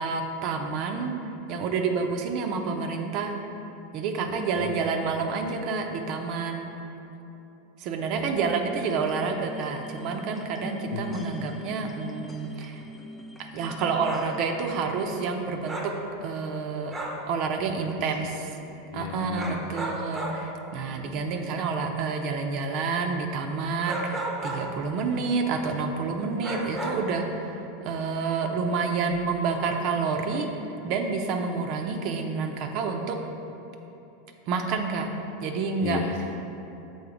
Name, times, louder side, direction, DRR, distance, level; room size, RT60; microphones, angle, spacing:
voice 1, 0.0-3.3 3.9-6.7 7.8-12.8 13.5-15.9 16.2-16.9 17.3-18.3 18.9-33.2 34.5-35.1 35.4-36.0, right 4 dB, 45° right, 4 dB, 0.6 m, -29 dB
voice 2, 4.3-4.7 5.0-5.2 8.1-8.5 10.8-11.3 18.0-18.3 18.6-19.7 29.1-29.2 35.8-36.6, left 6 dB, 70° left, 2 dB, 0.4 m, -35 dB
sound 1, 8.7-14.4, left 1 dB, 15° left, 0.5 m, -43 dB
sound 2, 13.9-14.3 15.7-16.0 16.9-17.3 19.3-20.5 23.8-24.7 26.4-27.2, right 1 dB, 10° right, 0.8 m, -33 dB
7.0 x 3.9 x 5.0 m, 2.9 s
supercardioid pair, 145°, 0 cm